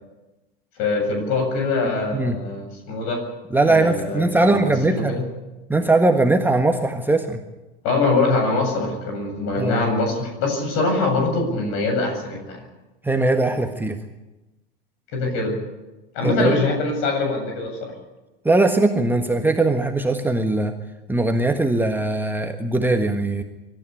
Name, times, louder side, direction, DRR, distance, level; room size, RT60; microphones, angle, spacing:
voice 1, 0.8-3.2 3.6-5.2 7.8-12.6 15.1-15.5 16.1-17.9, left 3 dB, 50° left, 4 dB, 7.9 m, -23 dB
voice 2, 3.5-5.1 5.7-7.4 9.6-9.8 13.0-14.0 16.2-16.5 18.4-20.7 21.1-23.4, right 2 dB, 5° right, 5 dB, 1.5 m, -20 dB
24.5 x 13.0 x 9.8 m, 1.1 s
figure-of-eight pair, 80°, 29 cm